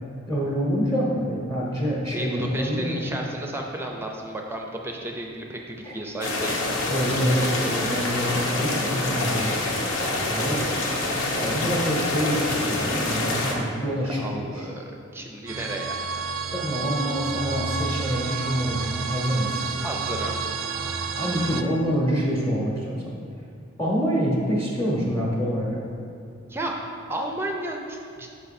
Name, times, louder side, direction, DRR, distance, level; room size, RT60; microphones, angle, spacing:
voice 1, 0.3-3.2 5.8-5.9 6.9-9.6 10.3-10.7 11.4-14.6 16.5-19.7 21.2-23.0 23.8-25.8, equal, 15° left, -4 dB, 0.8 m, -26 dB
voice 2, 2.1-6.6 9.9-10.5 14.0-16.0 19.8-20.4 26.5-26.7 27.1-28.3, right 1 dB, 10° right, 1 dB, 0.4 m, -33 dB
sound 1, 6.2-13.5, left 2 dB, 80° left, 0.9 m, -26 dB
sound 2, 15.5-21.6, right 5 dB, 75° right, 0.4 m, -30 dB
6.7 x 5.2 x 4.1 m, 2.4 s
head